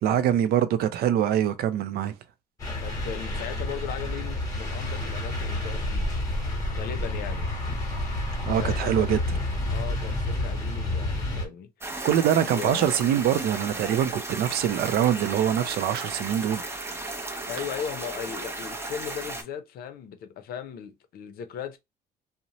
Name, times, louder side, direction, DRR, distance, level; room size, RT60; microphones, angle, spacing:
voice 1, 0.0-2.1 8.5-9.4 12.0-16.6, right 10 dB, 65° right, 0.4 m, -24 dB
sound 1, 2.6-11.5, left 1 dB, 20° left, 1.1 m, -29 dB
voice 2, 2.8-6.1 6.7-7.5 8.6-9.2 9.7-12.0 12.5-13.1 17.5-21.8, left 8 dB, 65° left, 0.5 m, -37 dB
sound 2, 11.8-19.4, right 2 dB, 15° right, 0.6 m, -35 dB
2.6 x 2.1 x 2.8 m
cardioid pair, 110°, 17 cm